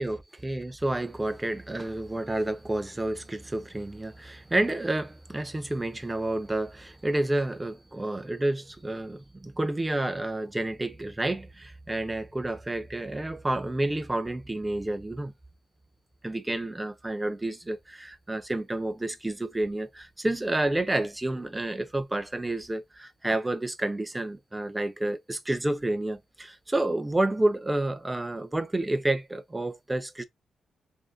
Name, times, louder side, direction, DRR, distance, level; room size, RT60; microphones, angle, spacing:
voice 1, 0.0-15.3 16.2-30.2, right 1 dB, 20° right, 0.8 m, -30 dB
3.1 x 2.8 x 3.7 m
supercardioid pair, 55°, 0 cm